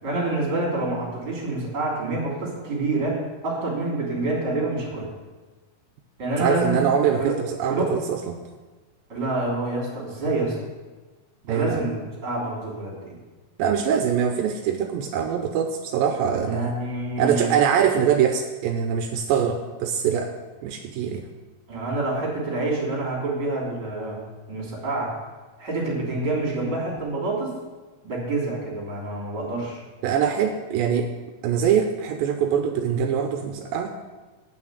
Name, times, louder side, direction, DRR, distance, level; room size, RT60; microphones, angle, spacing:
voice 1, 0.0-5.1 6.2-6.8 7.2-7.4 7.6-8.0 9.1-10.6 11.4-13.2 16.5-17.5 21.7-25.1 25.6-27.6 28.0-29.8, right 2 dB, 30° right, -3 dB, 3.4 m, -27 dB
voice 2, 6.4-8.4 11.5-11.8 13.6-16.7 17.2-20.3 20.6-21.3 30.0-31.1 31.4-33.9, right 8 dB, 85° right, 5 dB, 2.3 m, -23 dB
8.9 x 5.9 x 8.0 m, 1.3 s
omnidirectional pair, 4.2 m